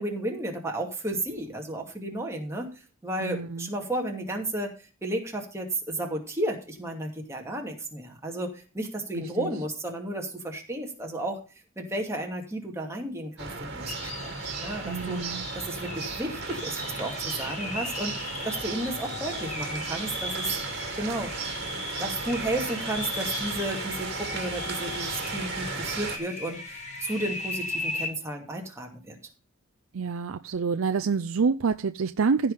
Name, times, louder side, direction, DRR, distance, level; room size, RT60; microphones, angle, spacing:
voice 1, 0.0-2.7 3.0-11.4 11.8-15.2 15.6-21.3 22.0-29.2, right 1 dB, 15° right, 2.5 m, -33 dB
voice 2, 3.2-3.7 9.4-9.5 14.8-15.4 29.9-32.5, right 5 dB, 85° right, 0.5 m, -27 dB
sound 1, 13.4-26.2, right 4 dB, 55° right, 2.3 m, -35 dB
sound 2, 13.8-28.1, left 2 dB, 35° left, 2.8 m, -37 dB
15.5 x 5.3 x 5.6 m
head